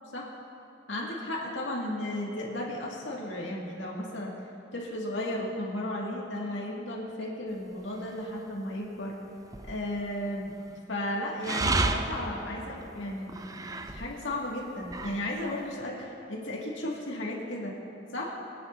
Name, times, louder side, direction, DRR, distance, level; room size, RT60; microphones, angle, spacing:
voice 1, 0.9-4.4 4.7-9.2 9.6-10.5 10.9-13.4 13.9-17.8 18.1-18.4, left 1 dB, 90° left, -3 dB, 2.1 m, -34 dB
sound 1, 8.0-8.4 9.4-10.2 11.4-14.3 14.7-15.4, right 2 dB, 20° right, 0.4 m, -32 dB
22.5 x 10.0 x 2.7 m, 2.8 s
head